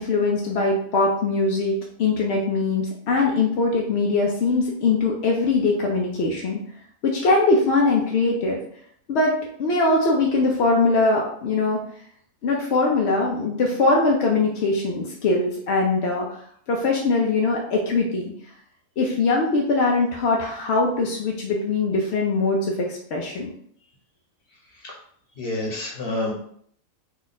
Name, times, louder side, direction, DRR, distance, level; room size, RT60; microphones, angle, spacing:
voice 1, 0.0-6.6 7.0-8.6 9.1-11.8 12.4-16.3 16.7-18.3 19.0-23.5, left 3 dB, 65° left, -1 dB, 0.6 m, -22 dB
voice 2, 25.4-26.3, left 2 dB, 45° left, -2 dB, 1.0 m, -28 dB
3.1 x 2.4 x 4.0 m, 0.64 s
omnidirectional pair, 1.6 m